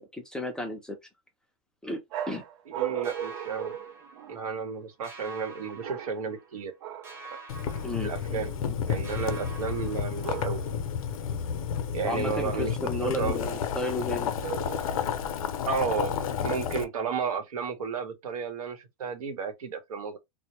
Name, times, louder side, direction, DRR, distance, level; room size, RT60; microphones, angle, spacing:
voice 1, 0.1-1.0 1.8-2.0 2.3-2.4 7.8-8.1 8.6-8.7 12.0-14.3, left 1 dB, 5° left, 0.3 m, -32 dB
sound 1, 2.1-4.6 5.8-6.4 6.8-7.3 10.2-10.9 14.4-15.1, right 11 dB, 55° right, 0.5 m, -37 dB
voice 2, 2.8-3.8 4.3-6.7 7.3-7.4 8.0-8.5 8.9-10.6 11.9-13.4 15.7-20.2, right 5 dB, 90° right, 1.0 m, -33 dB
sound 2, 3.0-4.7 5.0-6.7 7.0-8.8 9.0-10.7, right 3 dB, 15° right, 0.7 m, -47 dB
Boiling, 7.5-16.8, left 7 dB, 80° left, 0.5 m, -31 dB
2.1 x 2.0 x 2.9 m
supercardioid pair, 150°, 18 cm